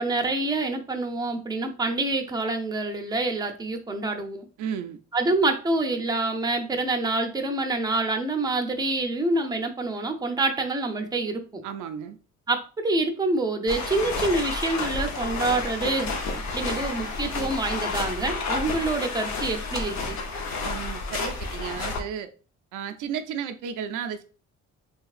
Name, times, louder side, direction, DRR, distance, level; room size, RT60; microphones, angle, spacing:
voice 1, 0.0-4.5 5.1-11.6 12.5-16.1 16.5-20.2, right 2 dB, 15° right, 0.5 m, -26 dB
voice 2, 4.6-5.0 11.6-12.2 20.6-22.3 22.7-24.2, right 8 dB, 85° right, 0.5 m, -33 dB
sound 1, 13.7-22.0, left 3 dB, 65° left, 0.8 m, -30 dB
3.2 x 2.8 x 2.4 m
cardioid pair, 90°, 30 cm